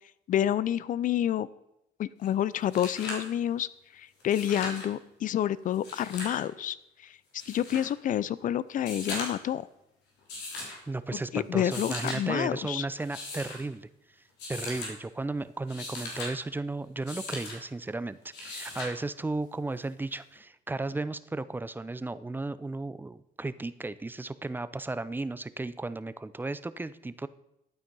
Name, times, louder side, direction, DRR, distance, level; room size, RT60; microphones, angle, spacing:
voice 1, 0.3-1.5 2.0-6.8 7.0-7.2 7.5-9.7 11.1-12.9, left 11 dB, 50° left, 19 dB, 0.6 m, -29 dB
sound 1, 2.2-2.3 2.6-3.3 4.2-4.9 5.7-6.4 7.4-7.9 8.8-9.5 10.3-10.8 11.6-12.2 13.0-13.6 14.4-14.9 15.5-16.3 17.1-17.6 18.3-18.9 20.4-20.5, left 2 dB, 90° left, 3.7 m, -38 dB
voice 2, 10.9-13.9 14.5-27.3, right 2 dB, 10° right, 15 dB, 0.5 m, -35 dB
11.5 x 9.1 x 5.4 m, 0.86 s
cardioid pair, 110°, 17 cm